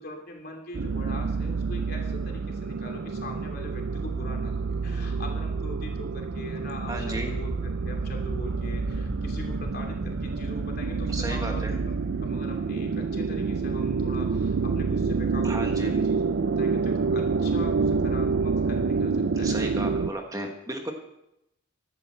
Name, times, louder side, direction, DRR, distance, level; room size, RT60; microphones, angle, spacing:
voice 1, 0.0-7.5 7.8-11.9 12.2-20.2, left 1 dB, 50° left, 1 dB, 2.9 m, -42 dB
sound 1, 0.7-20.1, right 4 dB, 65° right, 0.4 m, -28 dB
sound 2, 2.9-15.5, equal, 35° right, 4.3 m, -42 dB
voice 2, 6.9-7.3 11.1-11.7 15.4-16.0 19.4-20.9, right 1 dB, 15° right, 3 dB, 1.3 m, -34 dB
15.0 x 12.0 x 4.4 m, 0.82 s
head